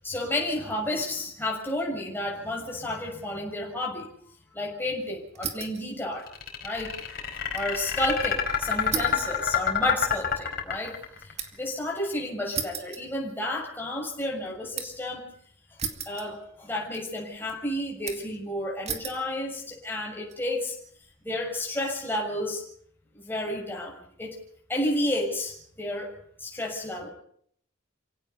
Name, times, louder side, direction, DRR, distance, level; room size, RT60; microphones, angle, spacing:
voice 1, 0.0-4.1 4.5-6.3 6.6-6.9 7.5-10.9 11.2-15.3 16.0-20.7 21.2-22.6 23.1-24.4 24.7-26.1 26.4-27.1, left 1 dB, 10° left, -2 dB, 6.7 m, -31 dB
sound 1, 5.3-5.9 6.2-7.7 8.1-8.2 8.9-11.7 12.5-13.7 14.0-15.1 15.8-16.7 16.9-17.5 18.1-18.4 18.8-19.3 19.9-20.4, right 6 dB, 35° right, 2.4 m, -36 dB
sound 2, 6.3-11.3, left 7 dB, 50° left, 4.6 m, -27 dB
29.0 x 17.5 x 5.5 m, 0.63 s
head